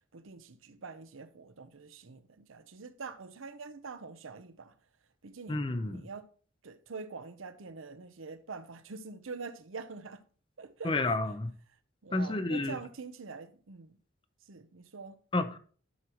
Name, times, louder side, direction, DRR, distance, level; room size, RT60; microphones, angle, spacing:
voice 1, 0.1-4.7 5.2-6.3 6.6-10.2 10.6-11.2 12.0-14.0 14.5-15.2, right 4 dB, 90° right, 0.7 m, -45 dB
voice 2, 5.5-6.0 10.8-11.5 12.1-12.8 15.3-15.6, left 2 dB, 25° left, 0.5 m, -30 dB
11.0 x 6.3 x 3.0 m
head